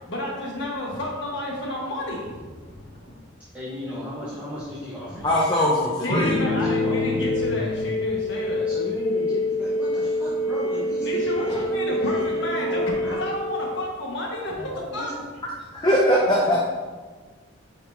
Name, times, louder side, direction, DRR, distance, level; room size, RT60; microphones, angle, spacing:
voice 1, 0.1-3.2 6.0-8.7 11.0-12.8 13.1-14.5 14.9-15.1, left 1 dB, 60° left, -3 dB, 1.5 m, -31 dB
voice 2, 3.5-5.3 5.6-7.2 8.6-13.2 14.6-15.3, left 1 dB, 10° right, -11 dB, 1.2 m, -36 dB
voice 3, 5.2-6.3 15.7-16.7, equal, 20° left, -3 dB, 0.6 m, -20 dB
sound 1, 6.1-14.0, left 2 dB, 75° left, 0.9 m, -26 dB
8.8 x 4.3 x 2.7 m, 1.4 s
head